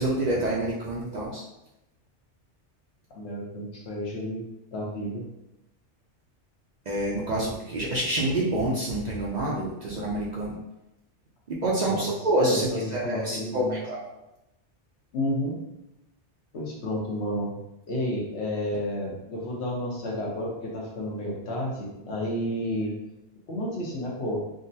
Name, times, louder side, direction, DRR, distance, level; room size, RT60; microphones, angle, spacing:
voice 1, 0.0-1.4 6.9-10.6 11.5-14.0, right 1 dB, 55° right, -5 dB, 0.5 m, -27 dB
voice 2, 3.1-4.5 4.7-5.3 11.8-12.1 12.4-13.8 15.1-15.6 16.5-17.5 17.9-23.0 23.5-24.4, left 1 dB, 70° left, -3 dB, 1.1 m, -31 dB
3.7 x 2.1 x 2.6 m, 0.90 s
omnidirectional pair, 1.2 m